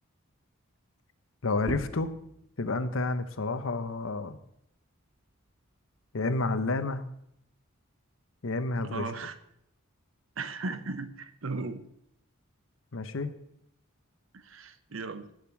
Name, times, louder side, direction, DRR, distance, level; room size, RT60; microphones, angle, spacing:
voice 1, 1.4-2.1 2.6-4.4 6.1-7.0 8.4-9.1 12.9-13.3, left 3 dB, 65° left, 11 dB, 0.8 m, -30 dB
sound 1, 1.6-6.8 7.2-9.0, right 1 dB, 35° right, 1.5 m, -46 dB
voice 2, 8.8-9.3 10.4-11.8 14.3-15.3, right 3 dB, 65° right, 11 dB, 0.9 m, -36 dB
10.5 x 6.6 x 8.4 m, 0.74 s
head